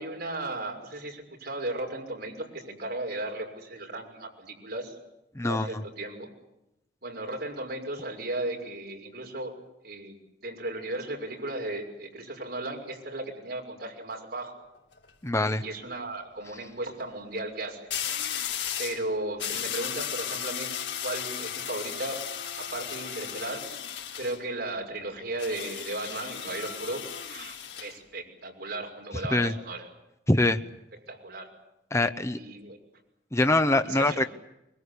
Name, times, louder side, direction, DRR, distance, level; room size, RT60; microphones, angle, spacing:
voice 1, 0.0-5.0 5.4-6.3 7.0-9.5 9.8-10.1 10.4-14.6 15.4-18.1 18.8-20.7 21.0-22.2 22.5-23.6 24.2-27.0 27.3-29.9 31.1-31.5 32.3-32.8 33.8-34.3, right 2 dB, 60° right, 1 dB, 6.4 m, -35 dB
voice 2, 5.3-5.7 15.2-15.6 29.3-29.5 30.3-30.6 31.9-32.4 33.3-34.3, left 2 dB, 15° left, 9 dB, 1.0 m, -23 dB
sound 1, 14.7-15.1 17.9-19.0 19.4-24.4 25.4-27.9, left 9 dB, 75° left, 3.3 m, -35 dB
24.5 x 22.5 x 8.5 m, 0.88 s
head